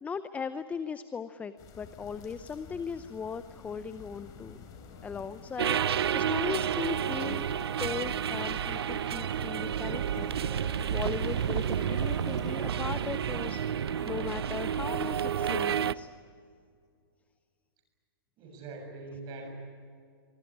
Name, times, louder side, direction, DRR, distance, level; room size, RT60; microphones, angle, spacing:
voice 1, 0.0-4.6 5.0-7.5 7.8-10.3 10.9-16.1, left 6 dB, 10° left, 13 dB, 0.6 m, -38 dB
sound 1, 1.6-13.6, left 6 dB, 30° left, 3.7 m, -50 dB
sound 2, 4.5-15.7, left 4 dB, 45° left, 6.7 m, -50 dB
sound 3, 5.6-15.9, right 9 dB, 80° right, 0.7 m, -30 dB
voice 2, 18.4-19.5, right 3 dB, 30° right, 3 dB, 7.1 m, -42 dB
24.5 x 21.0 x 9.9 m, 2.2 s
hypercardioid pair, 140°, 13 cm